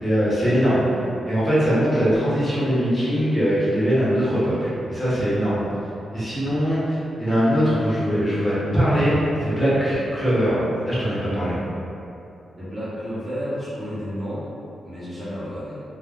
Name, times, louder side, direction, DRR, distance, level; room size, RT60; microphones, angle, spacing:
voice 1, 0.0-0.8 1.2-5.6 6.1-11.6, equal, 20° left, -11 dB, 0.8 m, -21 dB
voice 2, 12.6-14.5 14.8-15.8, equal, 20° right, -11 dB, 0.7 m, -31 dB
2.2 x 2.2 x 3.5 m, 2.7 s
wide cardioid pair, 145°, 0 cm